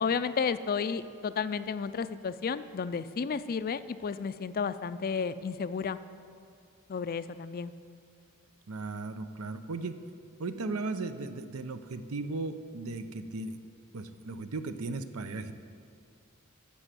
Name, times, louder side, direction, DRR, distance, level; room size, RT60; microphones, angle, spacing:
voice 1, 0.0-6.0 6.9-7.7, left 6 dB, 45° left, 13 dB, 0.4 m, -32 dB
voice 2, 8.7-10.0 10.4-13.6 13.9-15.5, right 3 dB, 80° right, 10 dB, 0.6 m, -36 dB
11.5 x 7.0 x 7.5 m, 2.4 s
head